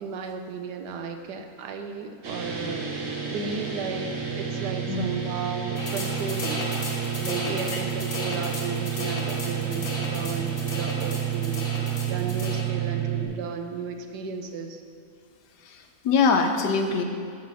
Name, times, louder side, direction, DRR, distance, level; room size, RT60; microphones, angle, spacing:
voice 1, 0.0-3.0 3.3-6.7 7.2-14.8, right 5 dB, 75° right, 5 dB, 1.3 m, -34 dB
sound 1, 2.2-13.2, right 8 dB, 50° right, 1.5 m, -30 dB
sound 2, 5.8-12.6, left 2 dB, 50° left, 2.1 m, -35 dB
voice 2, 15.6-17.0, left 5 dB, 80° left, 5 dB, 1.4 m, -23 dB
7.7 x 7.3 x 6.2 m, 2.2 s
omnidirectional pair, 1.8 m